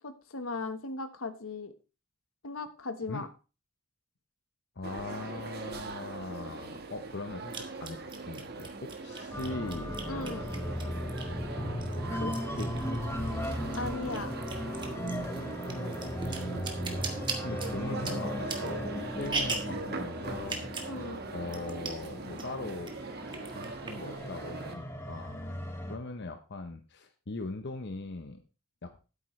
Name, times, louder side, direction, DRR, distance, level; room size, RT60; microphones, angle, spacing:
voice 1, 0.0-1.7 2.4-3.3 10.1-10.5 13.7-14.4 20.9-21.2, left 3 dB, 75° left, 10 dB, 1.2 m, -37 dB
voice 2, 4.8-8.0 8.3-10.0 12.1-12.7 15.9-16.8 17.4-20.6 21.3-22.9 23.5-25.5 25.9-28.4 28.8-28.9, left 3 dB, 55° left, 7 dB, 0.8 m, -40 dB
sound 1, 4.8-24.7, right 3 dB, 50° right, 1.3 m, -41 dB
sound 2, 5.8-5.9 7.5-11.4 11.8-13.4 13.6-19.8 20.4-21.0 21.2-21.3 21.5-22.1 22.4-22.9 23.3-24.2, right 3 dB, 20° right, 1.5 m, -38 dB
sound 3, 9.3-26.0, equal, 10° left, 1.4 m, -37 dB
12.0 x 8.9 x 3.2 m, 0.32 s
head